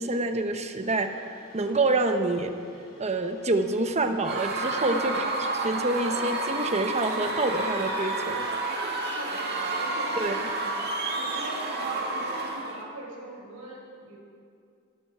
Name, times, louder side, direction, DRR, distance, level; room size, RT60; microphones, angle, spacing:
voice 1, 0.0-2.5 3.0-8.5 10.2-10.4, right 2 dB, 30° right, 7 dB, 1.0 m, -27 dB
Water / Boiling, 0.8-12.0, left 1 dB, 45° left, 5.3 m, -49 dB
Screaming / Cheering / Crowd, 4.2-12.8, right 2 dB, 50° right, 2.2 m, -30 dB
voice 2, 4.8-5.2 9.0-14.2, right 1 dB, 75° right, -2 dB, 4.8 m, -42 dB
20.5 x 13.0 x 4.7 m, 2.3 s
head